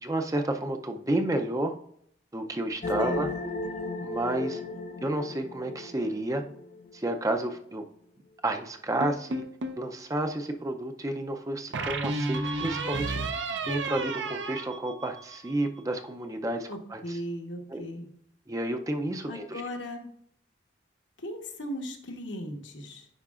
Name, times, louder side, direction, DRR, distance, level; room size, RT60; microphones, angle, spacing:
voice 1, 0.0-1.8 2.3-3.3 4.0-4.6 5.0-6.4 6.9-7.8 8.4-9.4 9.8-13.4 13.6-17.2 17.7-17.8 18.5-19.6, right 1 dB, 20° right, 5 dB, 0.5 m, -31 dB
sound 1, 2.8-7.3, left 2 dB, 40° left, 0.4 m, -35 dB
voice 2, 3.0-3.3 16.7-18.1 19.3-20.1 21.2-23.1, equal, 80° left, 3 dB, 1.2 m, -37 dB
sound 2, 9.0-9.9 11.7-15.5, right 3 dB, 70° right, 0.6 m, -32 dB
10.5 x 4.7 x 2.4 m, 0.67 s
head